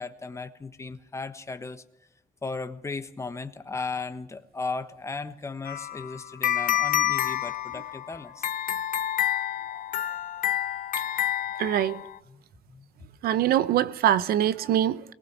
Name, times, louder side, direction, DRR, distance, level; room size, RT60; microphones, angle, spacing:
voice 1, 0.0-1.8 2.4-8.5 12.3-12.4 12.7-12.9, left 4 dB, 20° left, 1.2 m, -36 dB
sound 1, 5.7-12.2, left 12 dB, 65° left, 1.0 m, -28 dB
voice 2, 11.6-12.0 13.2-15.1, right 11 dB, 90° right, 0.8 m, -23 dB
22.5 x 19.5 x 6.2 m
cardioid pair, 130°, 15 cm